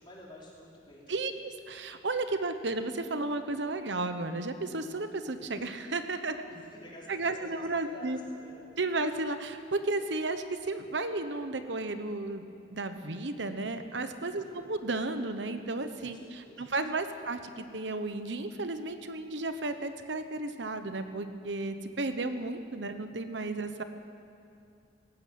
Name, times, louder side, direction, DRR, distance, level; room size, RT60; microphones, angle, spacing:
voice 1, 0.0-1.1 6.5-7.7 7.9-8.1 8.4-8.5 14.4-14.7 16.0-16.7, left 1 dB, 25° left, -5 dB, 5.0 m, -50 dB
voice 2, 1.1-6.4 7.1-8.2 8.8-12.4 12.7-23.8, right 2 dB, 70° right, 9 dB, 1.0 m, -33 dB
19.0 x 15.5 x 9.3 m, 2.5 s
head